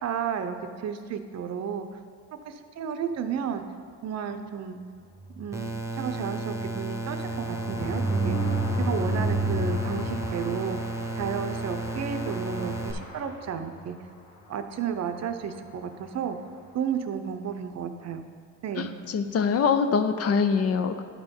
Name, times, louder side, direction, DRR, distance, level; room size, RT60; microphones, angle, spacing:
voice 1, 0.0-2.0 2.4-3.6 4.0-4.8 5.4-8.4 8.8-14.0 14.5-16.4 16.7-18.2 18.6-18.9, right 7 dB, 60° right, 9 dB, 0.6 m, -32 dB
sound 1, 5.1-13.9 14.4-14.5 14.8-14.9 15.1-15.4, right 1 dB, 75° left, 1.9 m, -32 dB
sound 2, 5.5-12.9, right 2 dB, 10° right, 0.9 m, -33 dB
voice 2, 18.8-21.0, left 6 dB, 55° left, 8 dB, 0.5 m, -24 dB
11.0 x 3.7 x 5.2 m, 2.1 s
cardioid pair, 90°, 30 cm